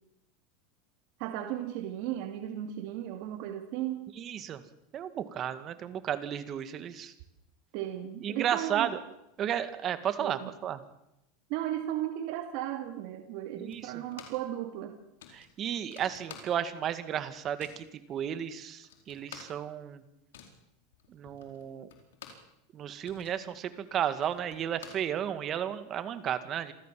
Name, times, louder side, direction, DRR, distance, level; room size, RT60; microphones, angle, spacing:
voice 1, 1.2-4.1 7.7-8.9 10.2-10.5 11.5-14.9, right 12 dB, 60° right, 4 dB, 2.3 m, -35 dB
voice 2, 4.2-4.6 4.9-7.1 8.2-9.0 9.4-10.8 13.6-14.0 15.3-20.0 21.1-21.9 22.7-26.7, right 9 dB, 35° right, 11 dB, 2.0 m, -33 dB
sound 1, 13.7-14.5 14.8-14.9 15.2-16.9 17.2-17.9 18.4-18.5 18.7-22.5 22.9-25.6, left 8 dB, 90° left, 4.6 m, -51 dB
27.0 x 14.5 x 7.6 m, 0.84 s
supercardioid pair, 130°, 0 cm